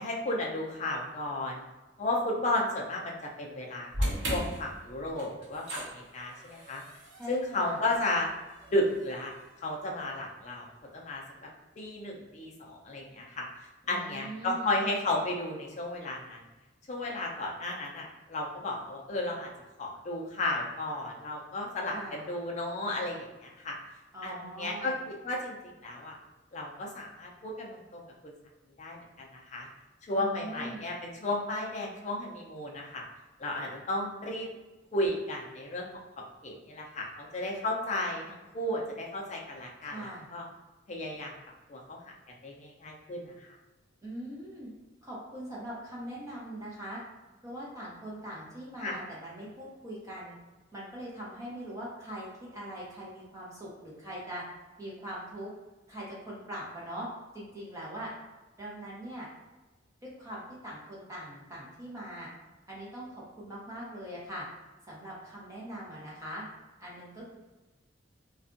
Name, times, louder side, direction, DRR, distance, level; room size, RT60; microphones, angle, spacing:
voice 1, 0.0-1.6 2.0-6.8 7.3-8.3 8.7-9.3 9.6-10.7 10.9-11.5 11.8-13.5 13.9-16.4 16.9-19.5 19.8-23.8 24.2-25.6 25.8-26.1 26.5-28.3 28.8-29.7 30.0-33.1 33.4-34.5 34.9-35.9 36.4-40.4 40.9-41.3 41.7-42.1 42.4-43.5 48.8-49.0, left 1 dB, 40° left, -1 dB, 0.5 m, -33 dB
sound 1, 3.9-10.2, equal, 80° right, 0.6 m, -38 dB
voice 2, 7.1-7.8 13.8-14.7 21.9-22.3 24.1-25.0 30.2-30.9 39.8-40.3 44.0-44.7 45.0-47.0 47.4-50.4 50.7-54.4 54.8-55.5 55.9-57.1 57.3-58.1 58.6-59.3 60.0-62.3 62.7-64.4 64.9-66.4 66.8-67.4, right 1 dB, 20° right, -6 dB, 0.8 m, -42 dB
2.5 x 2.3 x 2.5 m, 1.1 s
head